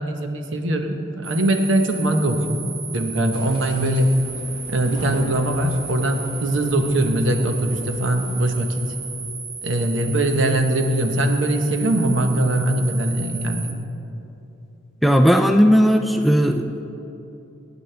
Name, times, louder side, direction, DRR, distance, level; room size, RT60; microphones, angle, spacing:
voice 1, 0.0-2.4 2.9-4.2 4.7-8.8 9.6-13.7, right 1 dB, 75° right, 5 dB, 1.0 m, -21 dB
sound 1, 1.2-13.7, right 5 dB, 45° right, 1.1 m, -35 dB
sound 2, 3.3-9.3, left 1 dB, 25° right, 2.3 m, -41 dB
voice 2, 15.0-16.8, equal, ahead, 5 dB, 0.3 m, -16 dB
18.0 x 9.1 x 3.4 m, 2.9 s
head